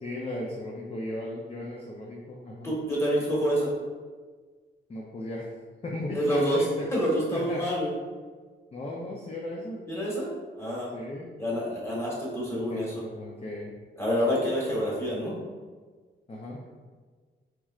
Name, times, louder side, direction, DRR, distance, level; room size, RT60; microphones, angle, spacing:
voice 1, 0.0-2.7 4.9-5.5 5.8-6.9 7.3-7.7 8.7-9.8 10.9-11.3 12.7-13.7 16.3-16.6, left 1 dB, 30° left, -2 dB, 0.5 m, -36 dB
voice 2, 2.6-3.7 6.1-6.6 6.9-7.9 9.9-10.9 11.4-13.0 14.0-15.4, equal, 15° left, -6 dB, 1.3 m, -27 dB
4.5 x 3.1 x 2.4 m, 1.5 s
wide cardioid pair, 110°, 20 cm